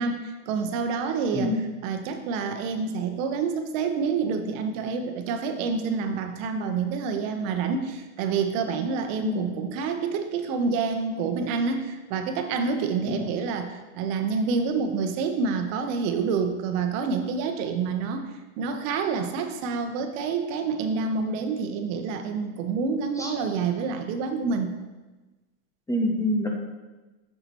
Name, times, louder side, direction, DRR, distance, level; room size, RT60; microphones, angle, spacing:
voice 1, 0.0-1.6 1.8-18.3 18.6-24.7, right 5 dB, 60° right, 6 dB, 1.0 m, -28 dB
voice 2, 25.9-26.5, left 1 dB, 5° left, 0 dB, 0.6 m, -26 dB
8.1 x 5.9 x 3.0 m, 1.2 s
supercardioid pair, 120°, 45 cm